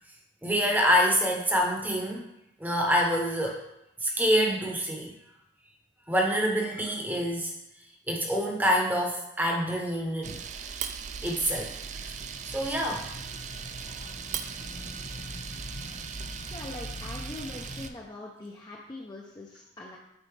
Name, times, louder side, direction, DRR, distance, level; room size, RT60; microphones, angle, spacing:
voice 1, 0.4-2.3 2.6-3.6 4.0-5.1 6.1-7.5 8.1-10.4 11.2-11.7 12.0-13.1, equal, 10° right, 0 dB, 0.9 m, -26 dB
Camera, 10.2-17.9, right 7 dB, 40° right, 0.3 m, -39 dB
sound 1, 11.6-17.9, left 1 dB, 40° left, 1.1 m, -43 dB
voice 2, 16.5-20.0, left 2 dB, 25° left, -2 dB, 0.5 m, -42 dB
8.5 x 4.0 x 3.3 m, 0.85 s
head